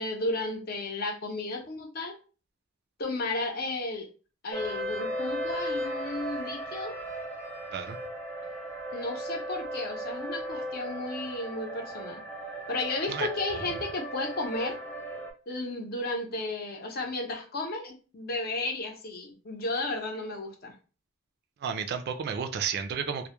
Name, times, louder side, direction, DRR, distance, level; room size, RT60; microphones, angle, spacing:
voice 1, 0.0-2.2 3.0-4.1 4.4-6.9 8.9-12.2 12.7-14.8 15.5-20.7, left 2 dB, 50° left, 2 dB, 0.6 m, -33 dB
sound 1, 4.5-15.3, right 1 dB, 10° left, 0.5 m, -36 dB
voice 2, 21.6-23.3, right 6 dB, 55° right, 7 dB, 0.3 m, -32 dB
2.2 x 2.0 x 2.9 m, 0.35 s
head